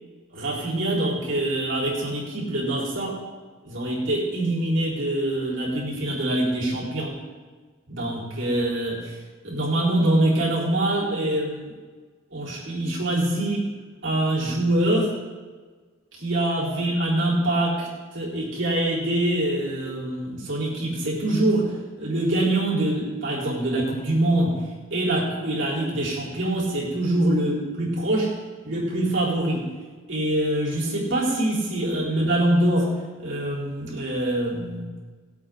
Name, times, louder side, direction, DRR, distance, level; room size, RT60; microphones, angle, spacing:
voice 1, 0.3-3.2 3.6-7.2 7.9-9.2 9.4-11.8 12.3-13.7 14.0-15.1 16.1-17.9 18.1-24.6 24.9-28.3 28.6-29.7 30.1-34.8, right 1 dB, 65° right, -6 dB, 3.9 m, -24 dB
20.0 x 8.2 x 3.9 m, 1.4 s
head